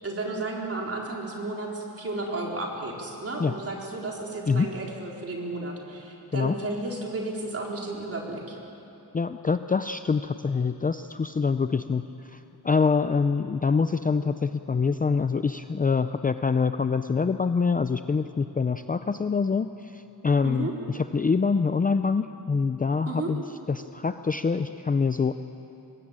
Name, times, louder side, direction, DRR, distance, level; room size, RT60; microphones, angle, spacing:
voice 1, 0.0-8.6 20.4-20.7 23.1-23.3, right 2 dB, 35° right, -1 dB, 4.2 m, -33 dB
voice 2, 9.1-12.0 12.3-12.4 12.6-19.7 19.9-20.7 20.9-23.4 23.7-25.3, left 5 dB, 20° left, 9 dB, 0.5 m, -25 dB
24.5 x 20.5 x 8.9 m, 2.9 s
wide cardioid pair, 135°, 41 cm